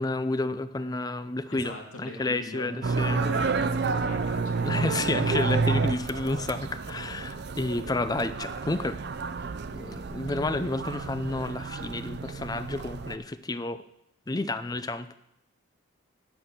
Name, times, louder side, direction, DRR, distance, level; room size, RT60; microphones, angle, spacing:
voice 1, 0.0-3.2 4.6-9.0 9.7-13.8 14.3-15.2, left 2 dB, 20° left, 12 dB, 0.4 m, -30 dB
voice 2, 1.5-2.8 3.1-5.6, left 1 dB, 85° left, 0 dB, 2.3 m, -41 dB
sound 1, 2.8-13.2, right 4 dB, 50° right, 0.4 m, -30 dB
10.0 x 6.0 x 6.9 m, 0.82 s
head